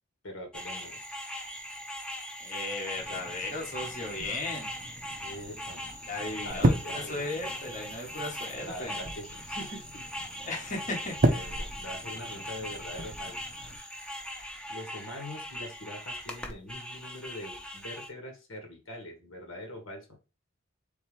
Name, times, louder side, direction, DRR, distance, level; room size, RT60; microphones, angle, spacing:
voice 1, 0.2-1.0 5.2-5.8 6.4-7.3 8.6-10.0 11.2-13.4 14.7-20.1, left 1 dB, 75° left, 3 dB, 1.5 m, -43 dB
sound 1, 0.5-18.1, equal, 5° left, 0.7 m, -40 dB
voice 2, 2.4-4.7 6.1-9.0 10.4-11.2, left 2 dB, 40° left, -2 dB, 1.2 m, -36 dB
sound 2, 3.0-13.8, right 1 dB, 40° right, 0.6 m, -34 dB
4.5 x 3.7 x 3.2 m, 0.31 s
head